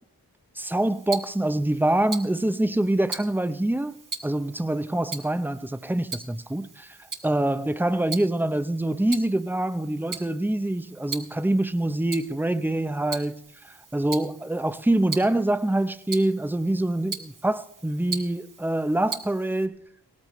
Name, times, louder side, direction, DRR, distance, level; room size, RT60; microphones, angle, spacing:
voice 1, 0.6-4.0 4.2-7.0 7.2-19.8, right 1 dB, 5° right, 0.6 m, -25 dB
Tick-tock, 0.6-19.7, right 4 dB, 50° right, 1.4 m, -41 dB
17.5 x 13.5 x 3.1 m
wide cardioid pair, 50°, 40 cm